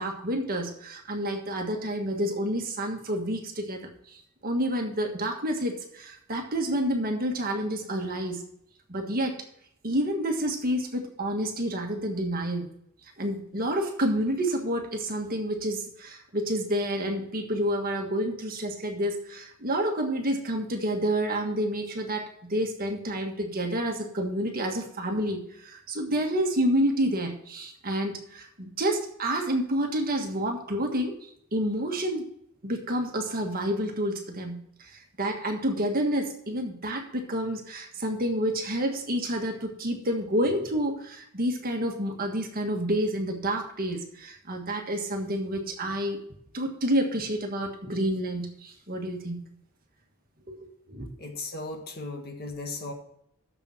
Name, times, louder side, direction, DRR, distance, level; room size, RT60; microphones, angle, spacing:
voice 1, 0.0-8.4 8.9-9.4 9.8-12.6 13.2-31.1 31.5-32.3 32.6-46.2 46.5-49.4 50.5-51.1, right 1 dB, 40° right, 3 dB, 1.6 m, -29 dB
voice 2, 51.2-52.9, left 2 dB, 45° left, 3 dB, 1.7 m, -36 dB
7.1 x 6.9 x 7.7 m, 0.71 s
head